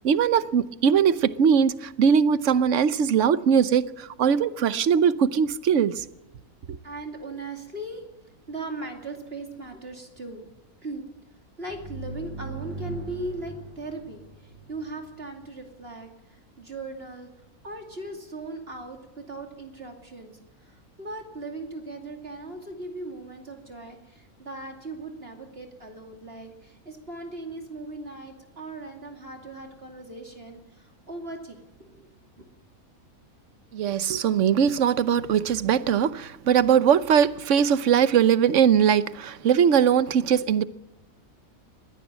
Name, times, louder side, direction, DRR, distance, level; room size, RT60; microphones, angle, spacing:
voice 1, 0.0-6.0 33.7-40.7, right 8 dB, 60° right, 1.1 m, -21 dB
voice 2, 6.8-8.0 8.5-10.5 10.8-11.0 11.6-17.3 17.6-32.1 32.4-32.5, right 2 dB, 40° right, 2.8 m, -38 dB
sound 1, 11.7-15.3, right 2 dB, 15° right, 5.3 m, -39 dB
21.5 x 16.5 x 7.3 m
omnidirectional pair, 1.5 m